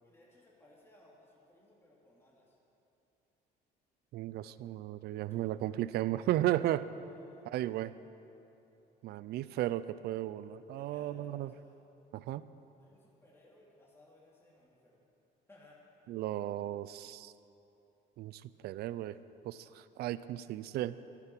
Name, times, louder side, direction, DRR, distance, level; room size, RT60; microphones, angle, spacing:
voice 1, 0.0-2.6 5.3-5.5 7.1-7.9 10.8-11.8 12.8-15.0 15.5-15.9, left 1 dB, 15° left, -5 dB, 2.7 m, -62 dB
voice 2, 4.1-6.9 7.5-7.9 9.0-11.5 12.1-12.5 16.1-17.3 18.2-19.2 19.4-21.0, right 14 dB, 70° right, 16 dB, 0.5 m, -35 dB
13.0 x 11.5 x 6.1 m, 2.9 s
cardioid pair, 110°, 17 cm